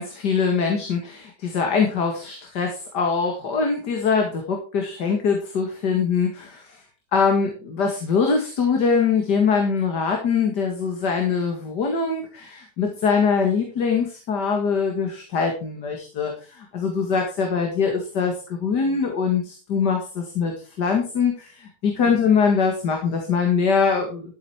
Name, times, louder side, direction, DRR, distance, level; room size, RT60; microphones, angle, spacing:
voice 1, 0.0-6.8 7.1-24.3, left 5 dB, 85° left, 2 dB, 2.5 m, -23 dB
13.5 x 8.1 x 4.4 m, 0.37 s
omnidirectional pair, 1.8 m